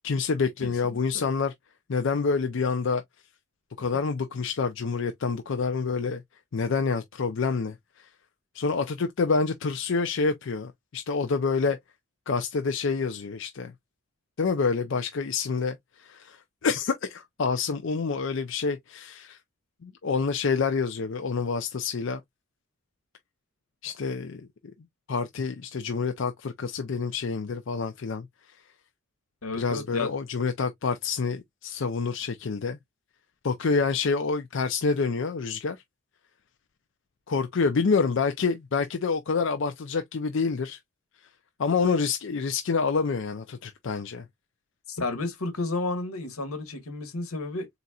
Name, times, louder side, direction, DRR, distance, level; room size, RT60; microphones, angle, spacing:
voice 1, 0.0-1.5 1.9-3.0 3.8-6.2 6.5-8.1 8.5-11.8 12.3-13.7 14.4-19.4 19.8-22.2 23.8-24.5 25.1-28.3 29.6-32.8 33.4-35.8 37.3-40.8 41.6-44.3, left 4 dB, 60° left, 0.5 m, -27 dB
voice 2, 0.6-1.2 29.4-30.1 44.9-47.7, left 3 dB, 85° left, 1.5 m, -32 dB
4.1 x 4.0 x 2.3 m
head